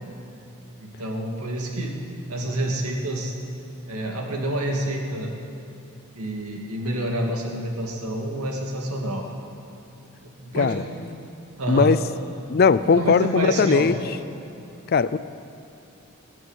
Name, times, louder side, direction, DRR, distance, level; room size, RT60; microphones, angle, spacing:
voice 1, 0.8-1.9 2.3-3.3 3.9-5.3 6.1-9.3 10.2-11.0 11.5-11.9 13.0-13.9, right 1 dB, 90° right, 1 dB, 2.2 m, -28 dB
voice 2, 11.7-12.0 12.5-14.0 14.9-15.2, left 5 dB, 45° left, 15 dB, 0.4 m, -19 dB
19.5 x 7.6 x 8.1 m, 2.7 s
head